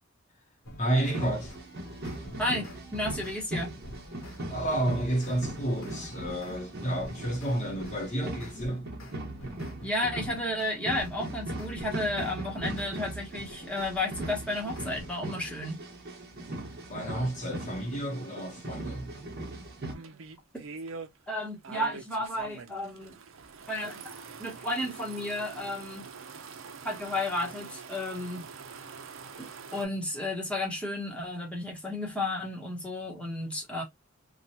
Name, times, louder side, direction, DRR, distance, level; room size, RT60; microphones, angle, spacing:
sound 1, 0.6-3.4 3.8-6.6 7.0-12.9 13.4-15.3, left 1 dB, 70° left, 1.0 m, -48 dB
voice 1, 0.8-1.6 4.5-8.9 16.9-19.3, right 1 dB, 35° left, 0.7 m, -31 dB
sound 2, 1.0-19.9, right 1 dB, 50° right, 1.0 m, -39 dB
voice 2, 2.4-3.7 9.8-15.8 21.3-23.2 23.7-26.1 26.8-28.4 29.4-33.8, left 1 dB, 5° left, 0.9 m, -33 dB
sound 3, 19.9-21.1 21.6-29.8, right 5 dB, 75° right, 0.5 m, -44 dB
2.9 x 2.2 x 2.8 m
head